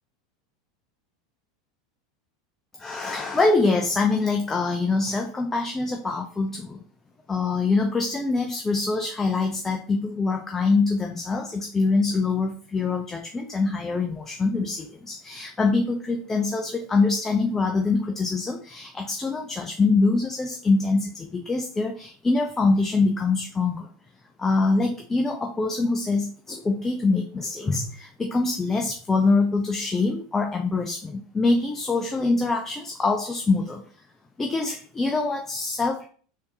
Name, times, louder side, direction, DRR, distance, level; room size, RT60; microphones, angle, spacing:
voice 1, 2.8-6.8 7.3-23.9 24.4-33.8 34.4-36.1, left 3 dB, 15° left, 3 dB, 0.4 m, -24 dB
3.5 x 2.7 x 2.7 m, 0.43 s
hypercardioid pair, 95°, 2 cm